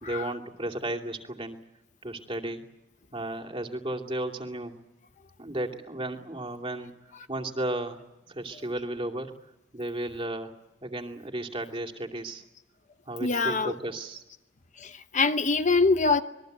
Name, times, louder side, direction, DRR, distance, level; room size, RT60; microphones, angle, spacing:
voice 1, 0.0-1.6 2.0-2.6 3.1-4.8 5.4-6.9 7.3-8.0 8.3-9.3 9.7-10.5 10.8-12.4 13.1-14.2, right 1 dB, 30° right, 2 dB, 2.6 m, -34 dB
voice 2, 13.2-13.7 14.8-16.2, left 3 dB, 40° left, 9 dB, 0.9 m, -24 dB
26.5 x 22.0 x 8.0 m, 0.96 s
head